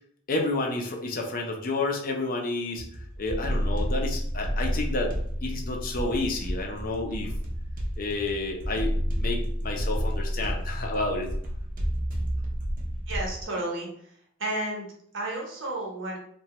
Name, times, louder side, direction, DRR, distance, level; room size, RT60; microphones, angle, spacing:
voice 1, 0.3-2.8 3.2-5.1 5.4-7.3 8.0-11.3, left 2 dB, 45° left, 1 dB, 0.4 m, -30 dB
sound 1, 2.8-13.4, equal, 40° right, 0.5 m, -30 dB
voice 2, 13.1-13.9 14.4-14.8 15.1-16.2, right 1 dB, 70° right, -2 dB, 0.9 m, -31 dB
2.9 x 2.2 x 2.9 m, 0.65 s
head